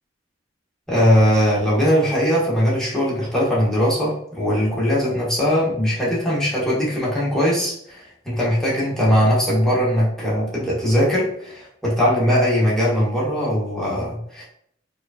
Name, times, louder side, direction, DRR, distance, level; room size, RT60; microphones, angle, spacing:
voice 1, 0.9-14.4, equal, 5° left, -7 dB, 1.1 m, -20 dB
4.6 x 2.4 x 2.5 m, 0.69 s
head